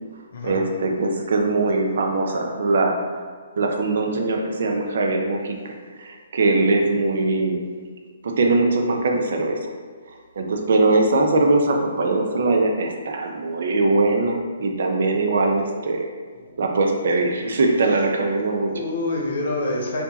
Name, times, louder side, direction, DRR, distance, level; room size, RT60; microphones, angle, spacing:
voice 1, 0.4-3.2 3.6-7.6 8.2-9.7 10.4-16.1 16.6-18.8, right 2 dB, 65° right, 2 dB, 0.6 m, -21 dB
voice 2, 16.3-16.8 18.3-18.4 18.7-20.0, left 2 dB, 60° left, 0 dB, 1.0 m, -27 dB
4.4 x 2.8 x 4.0 m, 1.5 s
hypercardioid pair, 140°, 0 cm